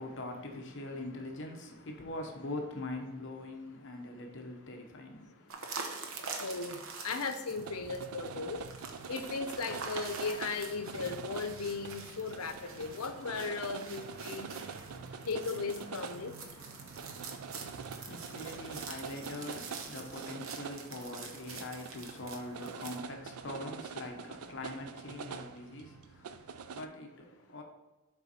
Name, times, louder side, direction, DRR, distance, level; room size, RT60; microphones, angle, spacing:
voice 1, 0.0-5.7 17.8-27.6, left 2 dB, 55° left, 0.9 m, -43 dB
sound 1, 5.5-23.0, right 4 dB, 70° right, 0.9 m, -46 dB
voice 2, 6.4-8.6 9.1-14.5 15.3-16.5, left 4 dB, 90° left, 0.7 m, -37 dB
sound 2, 7.5-26.9, right 6 dB, 85° right, 0.4 m, -45 dB
sound 3, 12.4-20.2, equal, 25° left, 1.7 m, -56 dB
7.1 x 4.2 x 4.3 m
head